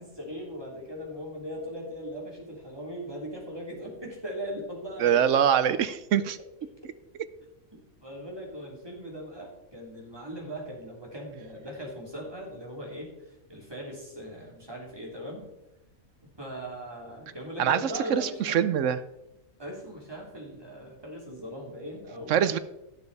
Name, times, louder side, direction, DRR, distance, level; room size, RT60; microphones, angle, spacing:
voice 1, 0.0-5.2 7.7-15.4 16.4-18.6 19.6-22.4, equal, 15° right, -2 dB, 3.2 m, -39 dB
voice 2, 5.0-6.4 17.6-19.0 22.3-22.6, right 9 dB, 70° right, 14 dB, 0.9 m, -24 dB
16.5 x 7.0 x 4.1 m, 0.91 s
omnidirectional pair, 1.4 m